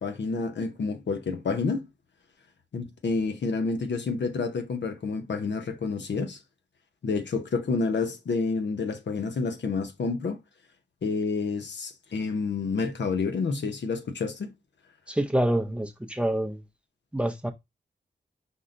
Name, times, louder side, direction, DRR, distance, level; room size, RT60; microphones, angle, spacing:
voice 1, 0.0-1.9 2.7-6.4 7.0-10.4 11.0-14.5, left 4 dB, 80° left, 0.8 m, -29 dB
voice 2, 15.1-16.6 17.1-17.5, right 1 dB, 5° right, 0.6 m, -26 dB
5.5 x 2.1 x 3.7 m
wide cardioid pair, 105°, 18 cm